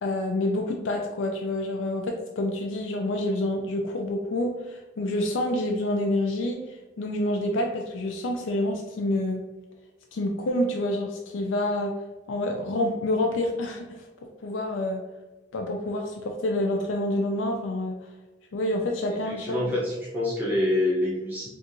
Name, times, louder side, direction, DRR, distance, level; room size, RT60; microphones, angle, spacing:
voice 1, 0.0-9.4 10.1-12.0 12.3-14.0 14.4-15.0 15.5-18.0 18.5-19.7, left 1 dB, 90° left, 2 dB, 0.4 m, -28 dB
voice 2, 19.3-21.5, left 1 dB, 10° right, -7 dB, 0.6 m, -26 dB
4.3 x 2.5 x 2.5 m, 1.1 s
head